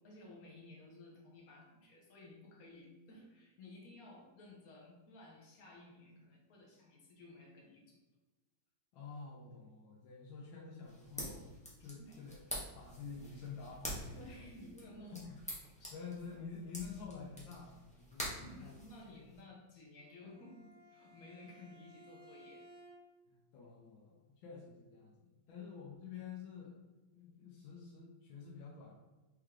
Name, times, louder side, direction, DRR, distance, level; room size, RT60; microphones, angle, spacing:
voice 1, 0.0-8.0 11.9-12.2 14.1-15.3 15.8-16.0 18.4-22.7 25.5-25.6, left 1 dB, 55° left, -1 dB, 1.2 m, -55 dB
voice 2, 8.9-12.4 12.7-14.4 15.1-15.2 15.9-18.7 23.3-26.8 27.1-28.9, left 5 dB, 85° left, -4 dB, 1.5 m, -49 dB
sound 1, 10.8-19.4, equal, 5° left, 0.7 m, -47 dB
Bowed string instrument, 20.0-23.3, equal, 55° right, 0.8 m, -59 dB
4.4 x 3.3 x 3.6 m, 1.2 s
omnidirectional pair, 2.1 m